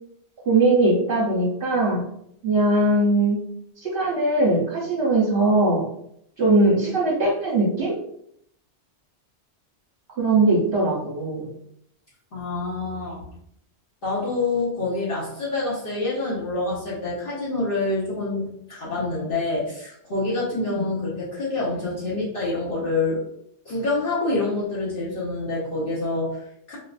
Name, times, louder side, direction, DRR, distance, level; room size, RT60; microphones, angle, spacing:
voice 1, 0.5-2.0 2.4-3.4 3.8-5.8 6.4-7.9 10.2-11.5 20.7-20.8, right 2 dB, 65° right, -5 dB, 1.1 m, -20 dB
voice 2, 12.3-13.2 14.0-23.2 23.6-26.8, left 2 dB, 55° left, -8 dB, 1.2 m, -27 dB
4.0 x 2.5 x 2.5 m, 0.71 s
omnidirectional pair, 1.1 m